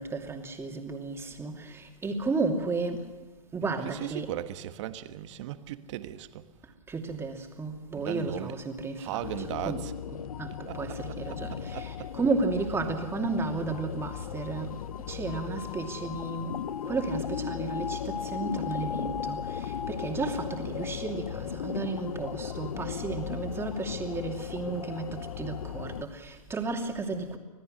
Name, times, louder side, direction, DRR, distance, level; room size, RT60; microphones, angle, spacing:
voice 1, 0.0-3.1 3.5-4.3 6.9-14.8 15.0-27.4, right 3 dB, 15° right, 2.7 m, -33 dB
voice 2, 3.6-6.5 7.9-8.6 9.0-9.9 10.7-12.1, right 13 dB, 55° right, 1.4 m, -38 dB
sound 1, 9.2-26.1, left 8 dB, 85° left, 0.8 m, -36 dB
26.0 x 17.0 x 6.6 m
hypercardioid pair, 120°, 18 cm